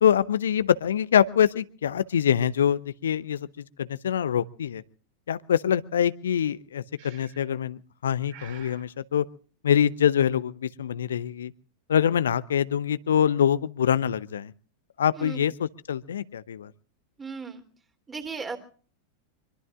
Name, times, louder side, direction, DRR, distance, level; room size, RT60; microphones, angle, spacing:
voice 1, 0.0-3.5 3.8-4.8 5.3-9.3 9.6-11.5 11.9-14.5 15.0-16.7, left 9 dB, 65° left, 16 dB, 0.8 m, -24 dB
Breathing, 7.0-7.6 8.3-8.9, right 8 dB, 50° right, 3.4 m, -49 dB
voice 2, 17.2-17.6 18.1-18.6, right 5 dB, 15° right, 7 dB, 3.2 m, -36 dB
25.0 x 23.0 x 2.5 m, 0.43 s
figure-of-eight pair, 90°, 0 cm